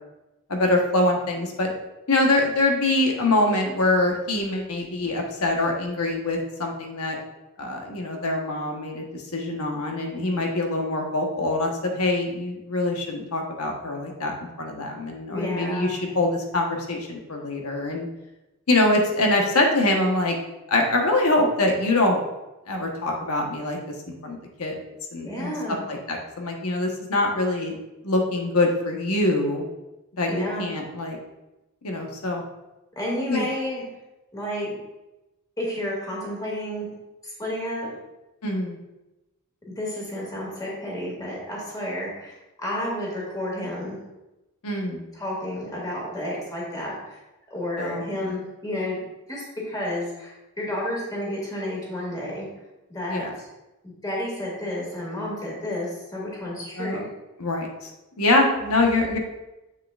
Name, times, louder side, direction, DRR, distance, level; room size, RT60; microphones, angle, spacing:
voice 1, 0.5-1.7 2.1-7.2 7.6-18.1 18.7-20.3 20.7-22.2 22.7-24.8 25.1-27.8 28.0-29.7 30.2-31.2 31.8-32.4 33.3-33.4 38.4-38.8 44.6-45.1 47.8-48.3 53.1-53.3 56.8-57.1 57.4-57.9 58.2-59.2, left 2 dB, 80° left, 1 dB, 1.2 m, -24 dB
voice 2, 15.3-15.9 25.2-25.8 30.3-30.7 33.0-33.8 34.3-34.8 35.6-36.9 37.2-37.9 39.7-44.0 45.1-47.2 47.5-49.0 49.3-52.5 52.9-53.5 53.8-57.1, left 1 dB, 15° left, -4 dB, 2.3 m, -31 dB
7.5 x 6.6 x 2.5 m, 1.0 s
head